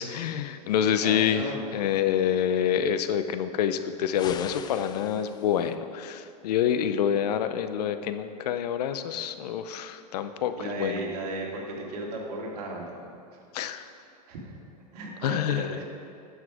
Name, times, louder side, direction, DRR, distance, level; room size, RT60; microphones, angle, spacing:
voice 1, 0.0-11.0 13.5-13.8 15.2-15.7, left 9 dB, 70° left, 10 dB, 0.6 m, -27 dB
voice 2, 0.9-1.7 10.6-13.1 14.3-14.5 14.9-15.8, right 2 dB, 65° right, -1 dB, 2.3 m, -35 dB
sound 1, 4.1-5.8, left 8 dB, 20° left, 0.3 m, -42 dB
10.0 x 7.3 x 4.9 m, 2.4 s
hypercardioid pair, 115°, 21 cm